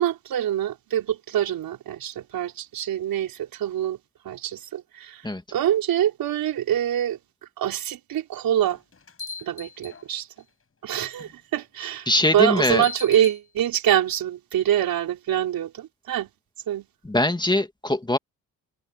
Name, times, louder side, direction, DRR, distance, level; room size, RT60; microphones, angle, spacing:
voice 1, 0.0-4.0 4.2-5.2 5.5-7.2 7.6-8.8 9.4-10.3 10.8-12.1 12.3-16.3 16.7-16.9, right 11 dB, 70° right, 4.8 m, -25 dB
sound 1, 8.6-10.4 11.2-11.3 12.4-13.4, left 5 dB, 35° left, 6.9 m, -39 dB
voice 2, 12.1-12.8 17.0-18.2, left 1 dB, 10° left, 2.5 m, -22 dB
supercardioid pair, 60°, 36 cm